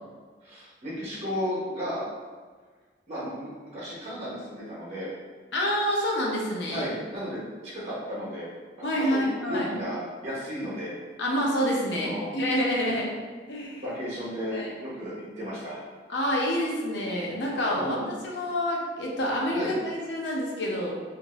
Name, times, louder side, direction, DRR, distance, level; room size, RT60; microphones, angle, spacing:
voice 1, 0.4-2.0 3.1-5.1 6.7-8.5 8.8-10.9 11.9-12.4 12.8-12.9 13.8-15.8 17.7-18.1 19.5-19.7, equal, 40° right, -7 dB, 0.9 m, -34 dB
voice 2, 5.5-6.9 8.8-9.7 11.2-13.1 13.5-13.8 14.5-14.7 16.1-18.0 18.2-20.9, equal, 75° left, -3 dB, 0.7 m, -27 dB
2.6 x 2.6 x 3.0 m, 1.5 s
head